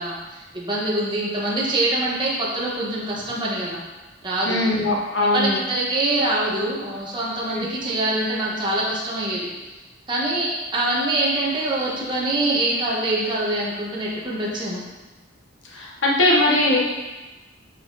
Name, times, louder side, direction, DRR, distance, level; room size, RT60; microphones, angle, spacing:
voice 1, 0.0-3.8 4.2-4.6 5.3-9.5 10.1-14.8, right 1 dB, 25° right, -6 dB, 1.5 m, -24 dB
voice 2, 4.4-5.6 7.5-7.7 15.6-16.8, left 1 dB, 65° left, -2 dB, 1.2 m, -20 dB
9.0 x 4.4 x 4.1 m, 1.2 s
head